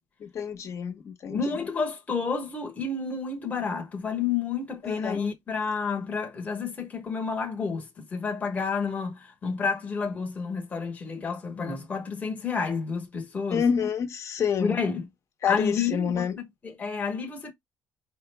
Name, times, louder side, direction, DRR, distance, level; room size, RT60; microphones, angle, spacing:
voice 1, 0.2-1.4 4.8-5.2 13.5-14.8 15.4-16.3, left 7 dB, 45° left, 0.9 m, -28 dB
voice 2, 1.3-13.6 14.6-15.1 15.5-17.5, left 5 dB, 20° left, 1.0 m, -30 dB
5.0 x 2.1 x 3.3 m
cardioid pair, 145°, 7 cm